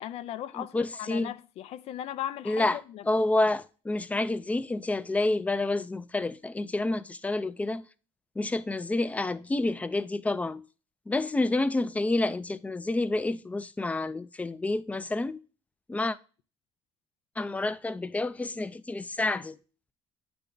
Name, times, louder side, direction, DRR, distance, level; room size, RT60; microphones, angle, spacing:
voice 1, 0.0-3.0, left 12 dB, 70° left, 0.5 m, -37 dB
voice 2, 0.6-1.3 2.5-7.9 8.4-10.6 11.1-15.4 15.9-16.2 17.4-19.6, left 2 dB, 15° left, 0.4 m, -29 dB
9.0 x 3.4 x 3.8 m
cardioid pair, 115°, 11 cm